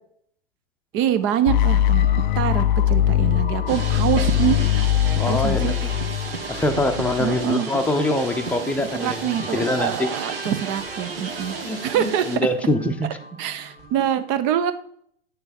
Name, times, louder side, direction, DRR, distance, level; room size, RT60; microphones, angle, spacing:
sound 1, 0.9-14.2, right 1 dB, 20° right, 2.0 m, -42 dB
voice 1, 0.9-2.1 2.3-4.6 5.3-5.7 7.2-7.7 8.9-11.6 11.8-12.3 13.4-14.7, right 10 dB, 40° right, 12 dB, 0.9 m, -24 dB
sound 2, 1.5-7.4, left 12 dB, 50° left, 0.4 m, -21 dB
sound 3, 3.7-12.4, right 4 dB, 65° right, 1.7 m, -33 dB
voice 2, 5.2-5.9 6.5-10.1 11.6-13.2, left 2 dB, 5° left, 4 dB, 0.8 m, -24 dB
8.8 x 6.7 x 4.4 m, 0.66 s
figure-of-eight pair, 100°, 31 cm